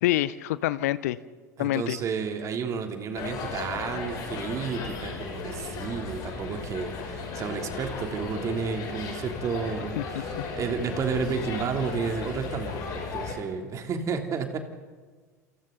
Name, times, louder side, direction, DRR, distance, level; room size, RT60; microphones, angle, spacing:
voice 1, 0.0-1.2 1.6-2.0 10.0-10.1, left 15 dB, 60° left, 18 dB, 0.7 m, -26 dB
voice 2, 1.6-14.6, right 5 dB, 35° right, 4 dB, 3.1 m, -31 dB
sound 1, 3.1-13.3, left 4 dB, 45° left, 6.8 m, -35 dB
28.5 x 27.5 x 4.0 m, 1.4 s
figure-of-eight pair, 75°, 9 cm